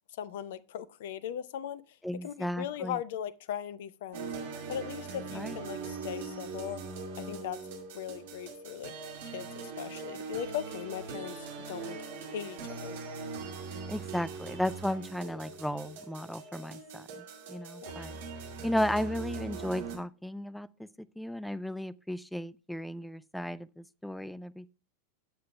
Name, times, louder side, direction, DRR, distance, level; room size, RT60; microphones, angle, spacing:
voice 1, 0.2-2.0 2.2-4.3 4.7-6.8 7.2-7.6 7.9-8.9 9.2-12.0 12.3-13.0 17.8-18.2, left 10 dB, 55° left, 0.5 m, -39 dB
voice 2, 2.0-3.0 5.3-5.6 13.9-18.1 18.6-20.9 21.2-24.7, equal, ahead, 0.4 m, -35 dB
sound 1, 4.1-20.0, right 4 dB, 55° right, 2.3 m, -41 dB
17.0 x 7.6 x 2.2 m
figure-of-eight pair, 90°, 0 cm